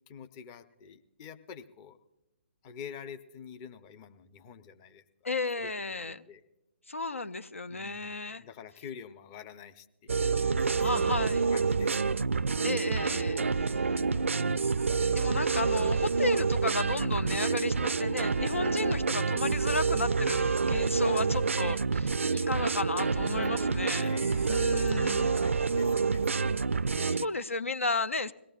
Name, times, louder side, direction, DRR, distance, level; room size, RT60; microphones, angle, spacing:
voice 1, 0.1-2.0 2.6-5.3 5.6-6.4 7.7-11.2 11.5-12.3 13.6-14.1 17.4-17.7 18.6-19.2 21.1-21.6 23.5-27.2, left 7 dB, 25° left, 10 dB, 0.7 m, -48 dB
voice 2, 5.2-6.2 6.9-8.4 10.8-11.4 12.6-13.9 15.1-24.1 24.5-25.4 27.1-28.3, left 3 dB, 85° left, 13 dB, 0.5 m, -33 dB
sound 1, 10.1-27.3, right 5 dB, 75° right, 0.4 m, -28 dB
22.5 x 17.5 x 2.4 m, 0.96 s
figure-of-eight pair, 135°, 7 cm